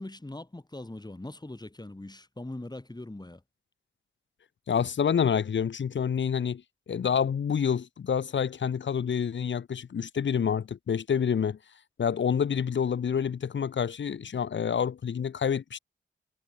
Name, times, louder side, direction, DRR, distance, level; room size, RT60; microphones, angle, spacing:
voice 1, 0.0-3.4, left 2 dB, 20° left, 3.3 m, -41 dB
voice 2, 4.7-6.6 6.9-11.6 12.0-15.8, left 7 dB, 70° left, 1.0 m, -28 dB
cardioid pair, 45°, 20 cm